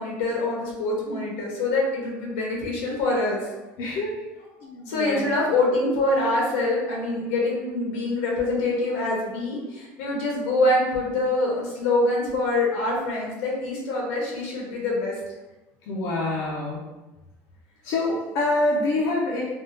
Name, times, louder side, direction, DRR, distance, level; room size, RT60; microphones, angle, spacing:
voice 1, 0.0-3.4 4.9-15.1, left 2 dB, 90° left, -3 dB, 1.2 m, -25 dB
voice 2, 3.8-4.2 4.6-5.2 15.9-16.8 17.8-19.5, left 2 dB, 65° left, -5 dB, 0.6 m, -26 dB
3.5 x 2.3 x 2.8 m, 1.0 s
supercardioid pair, 120°, 7 cm